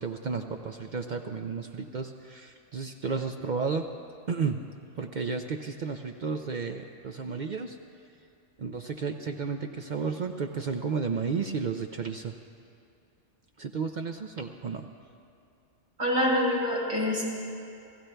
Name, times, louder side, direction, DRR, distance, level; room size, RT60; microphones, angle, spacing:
voice 1, 0.0-3.8 4.3-4.6 5.0-7.8 8.6-12.3 13.6-14.9, right 5 dB, 55° right, 5 dB, 0.5 m, -32 dB
voice 2, 16.0-17.2, left 1 dB, 25° right, -5 dB, 4.1 m, -25 dB
29.5 x 16.0 x 2.3 m, 2.5 s
omnidirectional pair, 1.3 m